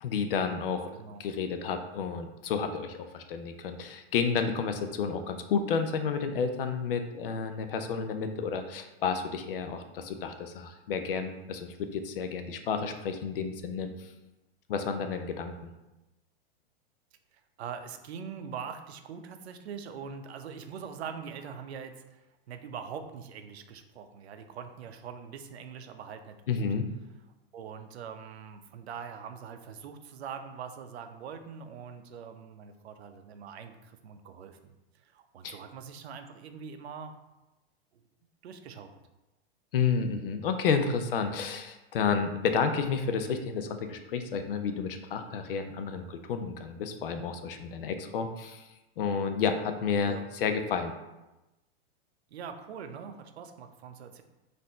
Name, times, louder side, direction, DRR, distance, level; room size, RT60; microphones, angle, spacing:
voice 1, 0.0-0.9 1.2-14.1 14.7-15.5 26.5-26.9 35.4-35.6 39.7-48.7 49.0-50.9, left 6 dB, 60° left, 7 dB, 0.6 m, -31 dB
voice 2, 0.9-1.2 17.3-26.7 27.5-34.7 35.0-37.1 37.9-38.0 38.4-38.9 50.1-50.2 52.3-54.2, right 7 dB, 90° right, 7 dB, 0.6 m, -43 dB
4.2 x 2.6 x 4.2 m, 1.0 s
supercardioid pair, 170°, 31 cm